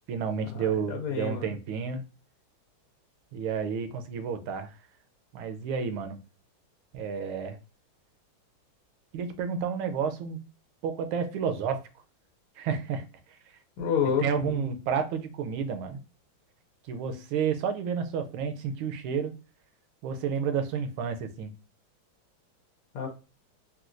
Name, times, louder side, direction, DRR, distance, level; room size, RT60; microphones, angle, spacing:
voice 1, 0.1-2.0 3.3-4.7 5.3-6.2 6.9-7.6 9.1-10.4 10.8-11.8 12.6-13.0 13.5-13.6 14.2-16.0 16.9-19.3 20.0-21.5, right 6 dB, 80° right, 7 dB, 1.4 m, -31 dB
voice 2, 0.9-1.5 13.8-14.5 22.9-23.3, left 7 dB, 85° left, 1 dB, 1.5 m, -28 dB
4.3 x 2.2 x 2.4 m, 0.32 s
omnidirectional pair, 2.3 m